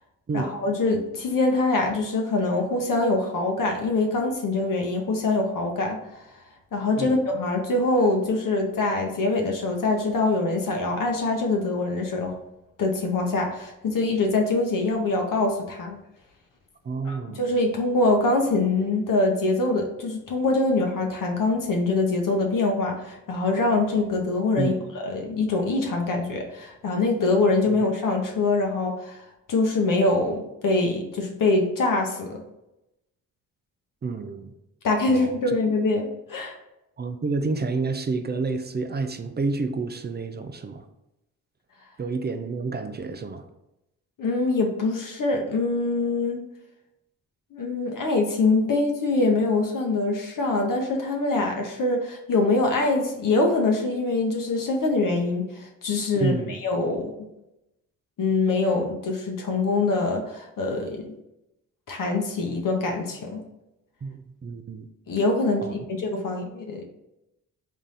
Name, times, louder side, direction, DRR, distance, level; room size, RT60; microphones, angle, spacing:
voice 1, 0.3-6.2 6.7-12.4 12.8-16.0 17.0-24.7 25.0-29.2 29.5-32.4 34.8-36.5 44.2-46.4 47.5-57.1 58.2-61.1 61.9-63.4 65.1-66.8, left 2 dB, 55° left, 0.8 m, -24 dB
voice 2, 16.8-17.5 24.6-24.7 27.7-27.8 34.0-34.5 35.1-35.5 37.0-40.8 42.0-43.4 56.2-56.6 64.0-64.9 65.6-65.7, right 4 dB, 25° right, 0.4 m, -29 dB
3.4 x 2.5 x 4.1 m
supercardioid pair, 50°, 39 cm